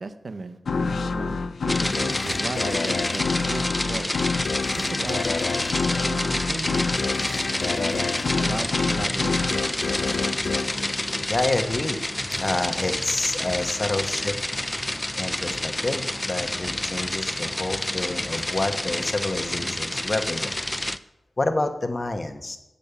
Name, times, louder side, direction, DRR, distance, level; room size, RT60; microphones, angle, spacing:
voice 1, 0.0-4.2 4.7-5.2 6.0-7.0 7.6-8.1 8.3-9.7, right 3 dB, 60° right, 10 dB, 0.7 m, -35 dB
sound 1, 0.7-11.8, left 4 dB, 85° left, 0.5 m, -27 dB
sound 2, 1.7-21.0, left 1 dB, 20° left, 0.4 m, -29 dB
voice 2, 11.3-12.0 12.3-14.4 15.1-20.5 21.4-22.6, left 2 dB, 45° left, 6 dB, 1.1 m, -28 dB
8.1 x 5.2 x 7.0 m, 0.97 s
cardioid pair, 50°, 0 cm